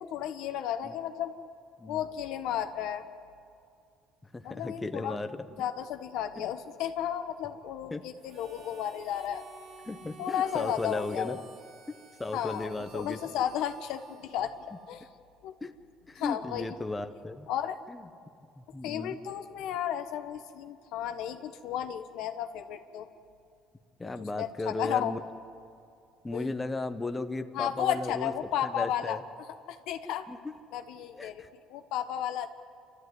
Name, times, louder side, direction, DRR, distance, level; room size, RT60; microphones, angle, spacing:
voice 1, 0.0-1.3 1.9-3.0 4.4-5.2 5.6-9.4 10.2-11.4 12.3-14.5 14.9-15.0 15.4-15.5 16.1-16.8 17.5-17.8 18.8-23.1 24.4-25.1 26.3-26.5 27.5-29.2 29.7-30.3 30.7-32.5, left 10 dB, 75° left, 8 dB, 1.3 m, -33 dB
voice 2, 4.3-5.7 6.4-6.5 7.9-8.0 9.9-11.4 12.2-13.2 15.6-15.7 16.1-17.5 17.9-18.1 18.6-19.2 24.0-25.2 26.2-28.3 28.6-29.2 30.3-30.4 31.1-31.5, left 2 dB, 15° left, 8 dB, 1.2 m, -35 dB
Harmonica, 8.2-15.1, right 4 dB, 55° right, 2.2 m, -53 dB
28.0 x 13.5 x 9.6 m, 2.5 s
supercardioid pair, 90°, 0 cm